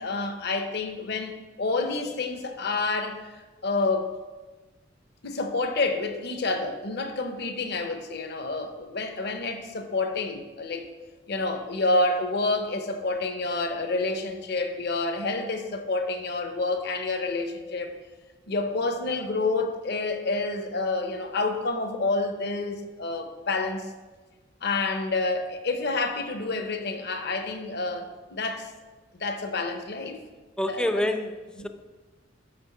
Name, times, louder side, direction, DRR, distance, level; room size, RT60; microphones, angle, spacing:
voice 1, 0.0-3.3 3.6-4.2 5.2-10.9 11.3-18.0 18.5-23.9 24.6-28.7 29.2-30.2 30.6-30.9 31.6-31.7, left 3 dB, 55° left, 0.7 m, -28 dB
voice 2, 30.6-31.7, left 1 dB, 5° left, 0.3 m, -27 dB
6.1 x 6.1 x 5.4 m
head